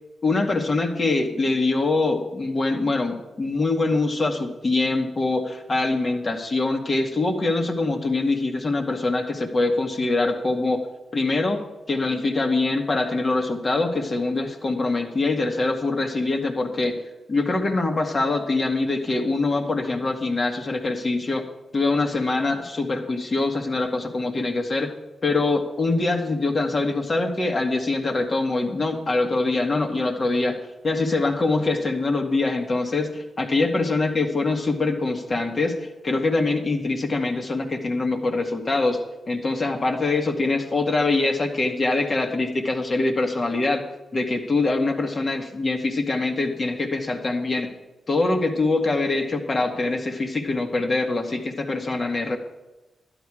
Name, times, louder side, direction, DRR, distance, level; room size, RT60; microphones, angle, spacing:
voice 1, 0.2-10.8 11.1-11.6 11.9-17.0 17.3-21.4 21.7-24.9 25.2-30.6 30.8-35.8 36.0-39.0 39.3-43.8 44.1-47.7 48.1-52.4, left 3 dB, 45° left, 3 dB, 2.0 m, -24 dB
12.0 x 10.5 x 5.0 m, 1.0 s
hypercardioid pair, 40°, 0 cm